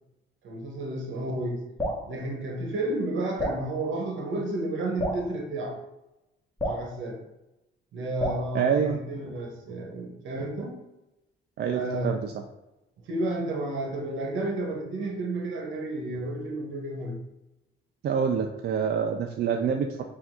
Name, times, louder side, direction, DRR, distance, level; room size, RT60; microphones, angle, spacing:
voice 1, 0.4-1.6 2.1-5.8 6.6-7.2 7.9-10.7 11.7-12.2 13.1-17.2, right 2 dB, 75° right, 2 dB, 1.1 m, -31 dB
Drip, 1.8-2.1 3.4-3.6 5.0-5.3 6.6-6.9 8.2-8.5, left 1 dB, 15° left, 1.3 m, -29 dB
voice 2, 8.5-9.0 11.6-12.3 18.0-20.1, right 7 dB, 55° right, 4 dB, 0.4 m, -26 dB
4.5 x 2.6 x 3.7 m, 0.96 s
cardioid pair, 90°, 20 cm